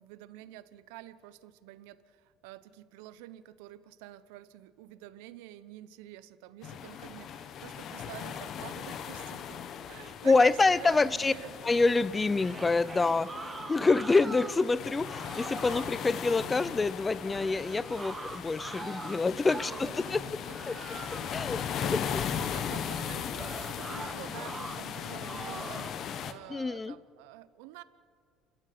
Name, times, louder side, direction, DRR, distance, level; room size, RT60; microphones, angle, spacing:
voice 1, 0.0-9.6 9.9-11.6 20.0-25.9 26.2-27.8, right 15 dB, 80° right, 15 dB, 0.9 m, -48 dB
sound 1, 6.6-26.3, left 8 dB, 55° left, 1.4 m, -38 dB
voice 2, 10.2-11.3 11.6-13.3 13.7-20.2 20.7-20.8 21.3-21.6 21.9-22.2 26.5-26.9, left 3 dB, 20° left, 19 dB, 0.7 m, -26 dB
sound 2, 12.3-14.7 15.0-15.9 17.3-20.0 20.5-21.4 23.3-24.8 25.2-26.0, right 3 dB, 20° right, 1.5 m, -43 dB
30.0 x 13.0 x 6.8 m, 2.2 s
supercardioid pair, 80°, 0 cm